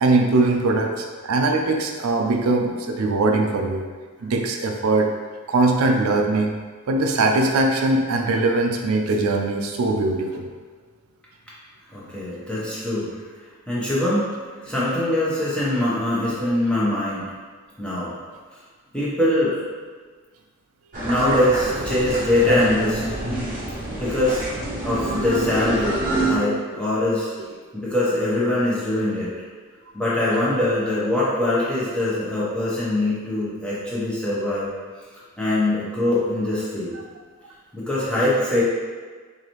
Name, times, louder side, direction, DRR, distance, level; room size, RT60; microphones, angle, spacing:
voice 1, 0.0-3.8 4.2-5.1 5.5-6.6 6.9-10.5 26.1-26.2 26.7-26.8 30.3-30.4, right 2 dB, 85° right, 3 dB, 0.4 m, -21 dB
voice 2, 11.9-13.2 13.7-14.3 14.6-17.3 17.8-18.1 18.9-19.6 21.0-23.0 23.9-24.4 24.8-27.3 27.7-29.3 29.9-34.7 35.4-36.9 37.7-38.6, left 1 dB, 5° left, -9 dB, 0.9 m, -22 dB
sound 1, 20.9-26.3, right 2 dB, 40° right, 0.7 m, -27 dB
4.7 x 2.7 x 3.0 m, 1.5 s
head